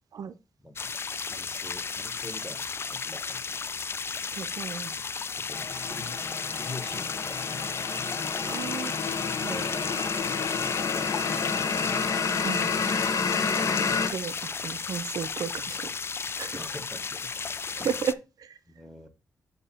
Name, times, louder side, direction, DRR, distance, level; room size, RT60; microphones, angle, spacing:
voice 1, 0.6-1.0 1.3-2.6 2.9-3.5 5.5-6.2 6.5-8.1 9.5-10.0 15.4-15.7 16.4-17.3 17.8-17.9 18.7-19.1, left 1 dB, ahead, 5 dB, 1.4 m, -45 dB
sound 1, 0.8-18.1, left 5 dB, 40° left, 0.3 m, -34 dB
voice 2, 4.3-4.9 8.5-8.9 9.4-9.6 12.4-12.7 14.1-15.8 16.3-16.5 17.8-18.5, right 7 dB, 75° right, 13 dB, 0.5 m, -33 dB
sound 2, 5.5-14.1, left 5 dB, 60° left, 0.9 m, -29 dB
8.1 x 2.8 x 5.6 m, 0.27 s
cardioid pair, 70°, 6 cm